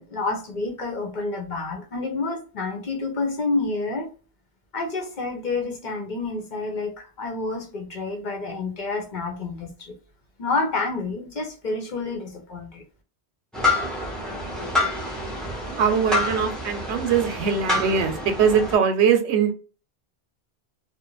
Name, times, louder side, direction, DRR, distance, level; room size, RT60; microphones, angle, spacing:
voice 1, 0.0-4.1 4.7-10.0 10.4-12.8, left 3 dB, 50° left, 0.7 m, -29 dB
sound 1, 13.5-18.7, left 2 dB, ahead, 0.6 m, -27 dB
voice 2, 15.8-19.5, right 6 dB, 85° right, 0.9 m, -21 dB
2.4 x 2.1 x 3.0 m
omnidirectional pair, 1.1 m